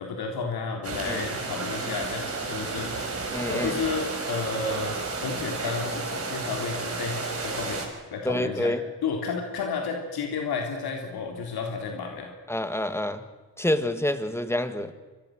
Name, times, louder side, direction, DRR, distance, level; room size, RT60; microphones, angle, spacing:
voice 1, 0.0-8.7 9.0-12.3, left 5 dB, 70° left, 2 dB, 3.5 m, -32 dB
sound 1, 0.8-7.9, right 3 dB, 40° right, 5.7 m, -32 dB
voice 2, 3.3-3.7 8.2-8.8 12.5-13.3 13.6-14.9, left 1 dB, 5° left, 10 dB, 1.8 m, -27 dB
26.5 x 22.5 x 6.5 m, 1.3 s
cardioid pair, 110°, 38 cm